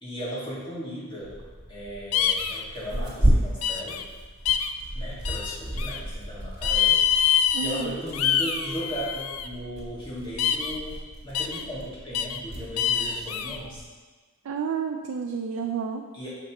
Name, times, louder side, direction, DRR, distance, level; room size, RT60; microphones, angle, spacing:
voice 1, 0.0-1.3 1.7-4.0 4.9-7.0 7.6-13.8 16.1-16.3, equal, 25° left, -8 dB, 1.7 m, -36 dB
Tearing, 1.2-13.8, equal, 55° right, 1.6 m, -32 dB
sound 1, 2.1-2.6 3.6-4.0 4.5-4.7 5.2-6.0 6.6-7.8 8.1-9.5 10.4-10.8 11.3-11.6 12.1-12.4 12.8-13.6, left 8 dB, 90° left, 0.4 m, -25 dB
voice 2, 7.5-8.0 14.4-16.0, right 6 dB, 85° right, 3 dB, 0.4 m, -30 dB
6.7 x 5.1 x 3.0 m, 1.3 s
head